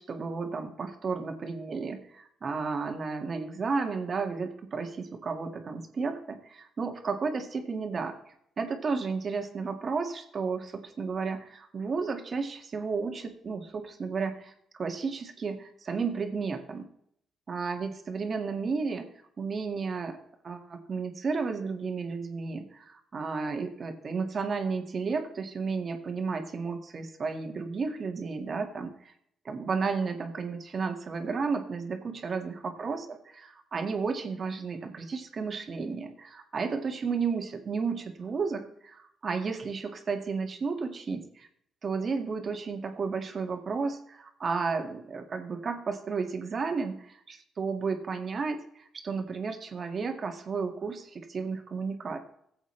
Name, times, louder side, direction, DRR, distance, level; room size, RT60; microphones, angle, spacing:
voice 1, 0.0-14.5 14.8-16.9 17.5-19.1 19.4-20.2 20.4-29.1 29.5-33.2 33.5-41.5 41.8-52.2, right 4 dB, 45° right, 4 dB, 1.9 m, -33 dB
16.0 x 8.0 x 3.3 m, 0.69 s
cardioid pair, 90°, 0 cm